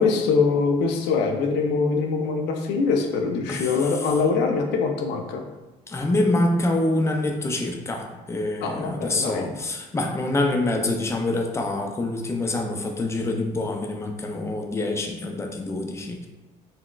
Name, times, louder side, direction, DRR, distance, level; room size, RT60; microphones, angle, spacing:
voice 1, 0.0-5.4 8.6-9.5, left 4 dB, 90° left, 4 dB, 0.5 m, -23 dB
voice 2, 5.9-16.3, left 2 dB, 15° left, 3 dB, 0.4 m, -26 dB
3.9 x 2.1 x 2.3 m, 1.1 s
cardioid pair, 110°, 17 cm